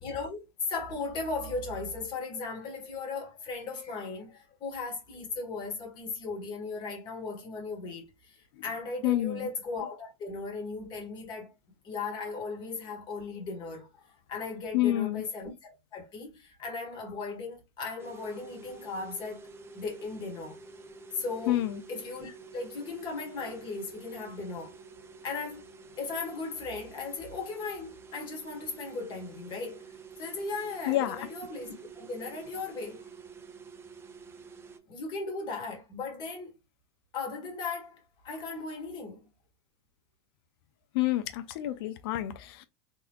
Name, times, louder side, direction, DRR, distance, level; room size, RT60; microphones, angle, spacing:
voice 1, 0.0-11.5 11.8-19.5 19.7-20.6 21.1-24.7 25.2-25.7 26.0-29.9 30.2-33.1 34.9-36.5 37.1-39.3, left 4 dB, 35° left, 1.6 m, -37 dB
voice 2, 9.0-9.5 14.7-15.2 21.5-21.8 30.9-31.2 40.9-42.6, left 14 dB, 70° left, 0.5 m, -28 dB
sound 1, 18.0-34.8, right 5 dB, 20° right, 0.5 m, -49 dB
3.8 x 3.1 x 2.3 m
supercardioid pair, 135°, 13 cm